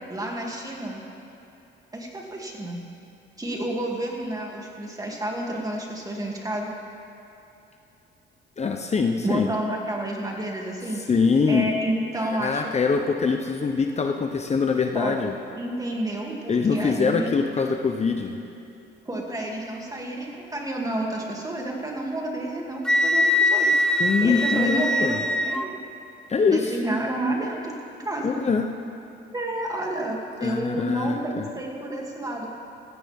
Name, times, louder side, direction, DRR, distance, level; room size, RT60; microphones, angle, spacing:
voice 1, 0.1-1.0 1.9-2.8 3.4-6.7 9.2-11.0 11.5-12.7 14.9-15.2 15.6-17.4 19.0-23.7 24.2-25.8 26.5-27.7 28.0-28.4 29.3-32.5, right 1 dB, 20° right, -1 dB, 2.7 m, -30 dB
voice 2, 8.6-9.5 11.1-11.7 12.2-15.3 16.5-18.4 24.0-25.2 26.3-26.7 28.2-28.6 30.4-31.4, left 5 dB, 35° left, 4 dB, 0.8 m, -23 dB
Wind instrument woodwind instrument, 22.8-25.7, left 1 dB, 5° left, 0.6 m, -22 dB
17.0 x 15.5 x 3.7 m, 2.9 s
cardioid pair, 90°, 20 cm